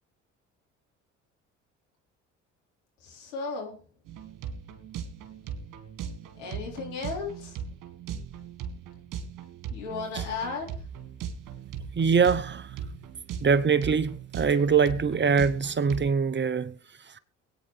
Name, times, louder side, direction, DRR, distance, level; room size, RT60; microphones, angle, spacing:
voice 1, 3.0-3.8 6.4-7.6 9.7-10.7, left 4 dB, 75° left, 4.3 m, -35 dB
sound 1, 4.1-16.1, right 7 dB, 60° right, 2.2 m, -38 dB
voice 2, 11.9-12.7 13.4-16.8, right 6 dB, 30° right, 0.9 m, -23 dB
23.0 x 9.0 x 3.3 m
hypercardioid pair, 50°, 37 cm